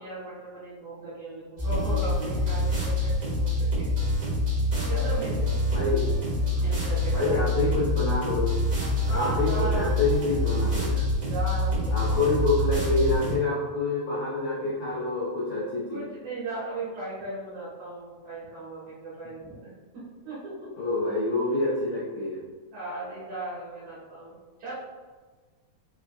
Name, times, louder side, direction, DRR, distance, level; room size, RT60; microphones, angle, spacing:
voice 1, 0.0-3.9 4.9-5.4 6.5-7.4 9.1-10.0 11.3-12.3 15.9-19.6 19.9-20.5 22.7-24.3 24.6-24.7, right 2 dB, 75° right, -10 dB, 2.7 m, -36 dB
sound 1, 1.6-13.3, left 1 dB, 35° right, 1.4 m, -26 dB
voice 2, 5.7-6.1 7.1-8.6 9.1-11.1 11.9-16.1 20.8-22.4, left 2 dB, 75° left, -6 dB, 1.3 m, -27 dB
5.6 x 3.4 x 2.3 m, 1.4 s
omnidirectional pair, 3.4 m